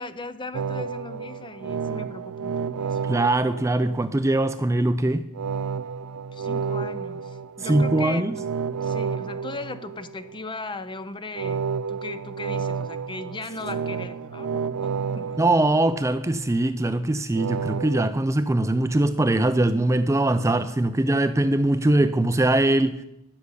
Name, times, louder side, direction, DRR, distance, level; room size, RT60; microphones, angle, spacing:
voice 1, 0.0-3.0 6.3-8.3 8.8-15.4, left 2 dB, 20° left, 0.7 m, -38 dB
sound 1, 0.5-4.4 5.3-10.4 11.3-16.4 17.4-18.1, right 6 dB, 85° right, 0.5 m, -31 dB
voice 2, 3.0-5.3 7.6-8.4 15.1-23.0, right 1 dB, 15° right, 0.4 m, -22 dB
13.0 x 6.7 x 9.7 m
head